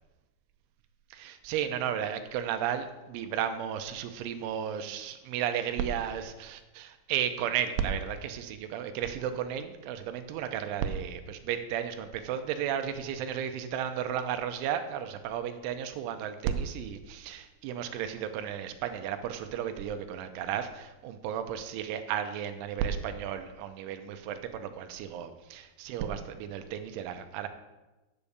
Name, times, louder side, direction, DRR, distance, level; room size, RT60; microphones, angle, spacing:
voice 1, 1.1-27.5, right 9 dB, 90° right, 8 dB, 3.2 m, -33 dB
8.6 x 8.2 x 6.8 m, 1.1 s
omnidirectional pair, 5.5 m